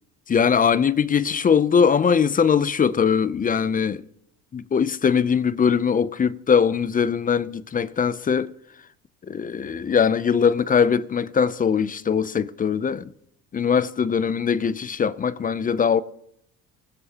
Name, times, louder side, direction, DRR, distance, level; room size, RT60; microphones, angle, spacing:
voice 1, 0.3-4.0 4.5-8.5 9.3-13.1 13.5-16.0, left 6 dB, 25° left, 0.5 m, -21 dB
25.0 x 15.5 x 2.9 m
cardioid pair, 105°, 32 cm